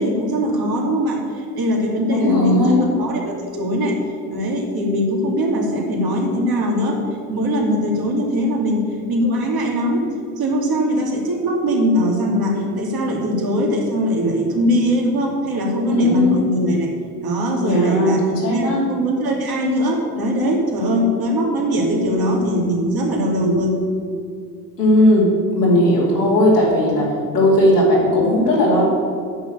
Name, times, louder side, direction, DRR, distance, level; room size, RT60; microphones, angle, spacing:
voice 1, 0.0-4.0 4.3-7.0 7.3-10.1 10.4-16.9 17.2-18.2 18.5-23.8, equal, 50° right, 0 dB, 2.6 m, -21 dB
voice 2, 2.1-2.8 15.9-16.4 17.6-18.8 24.8-25.2 25.5-27.1 27.3-28.8, left 1 dB, 85° left, -6 dB, 2.5 m, -16 dB
8.8 x 6.5 x 8.4 m, 2.3 s
figure-of-eight pair, 50°, 46 cm